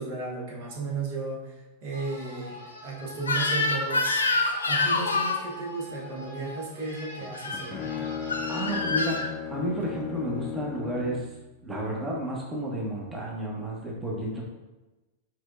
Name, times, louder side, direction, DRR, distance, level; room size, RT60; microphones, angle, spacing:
voice 1, 0.0-4.2 4.6-8.3, right 3 dB, 50° right, -3 dB, 1.1 m, -35 dB
sound 1, 1.9-8.8, equal, 80° right, 1.5 m, -44 dB
Crying sobbing / Screech, 3.2-5.4 7.3-7.6 8.3-9.3, left 3 dB, 80° left, 0.5 m, -26 dB
Bowed string instrument, 7.2-11.4, left 8 dB, 30° left, 0.5 m, -36 dB
voice 2, 8.2-9.2 9.5-11.3 11.6-14.4, equal, 15° right, -3 dB, 1.1 m, -31 dB
4.7 x 4.3 x 2.5 m, 1.1 s
figure-of-eight pair, 90°, 0 cm